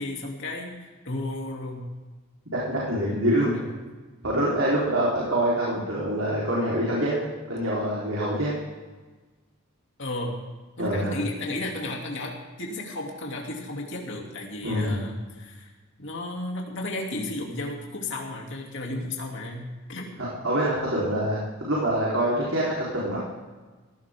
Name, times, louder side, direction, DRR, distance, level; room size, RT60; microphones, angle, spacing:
voice 1, 0.0-1.9 3.1-3.6 10.0-10.4 10.8-15.7 16.0-20.1, left 2 dB, 60° left, -1 dB, 2.8 m, -34 dB
voice 2, 2.5-3.6 4.2-8.5 10.8-11.2 14.6-15.0 20.2-23.2, right 1 dB, 80° right, -6 dB, 3.9 m, -25 dB
18.5 x 16.0 x 3.7 m, 1.3 s
head